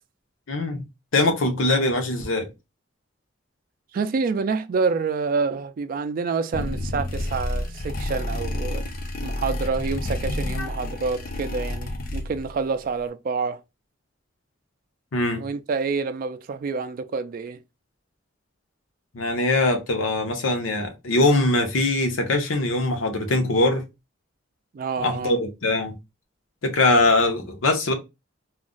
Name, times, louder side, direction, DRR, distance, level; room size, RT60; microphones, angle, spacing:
voice 1, 0.5-0.8 1.1-2.5 10.6-10.7 15.1-15.4 19.1-23.8 25.0-25.9 26.6-27.9, left 2 dB, 85° left, 0.7 m, -22 dB
voice 2, 3.9-8.8 9.2-13.6 15.4-17.6 24.7-25.4, right 4 dB, 45° right, 0.3 m, -27 dB
sound 1, 6.5-12.6, left 1 dB, 45° left, 0.5 m, -29 dB
2.4 x 2.0 x 3.7 m
head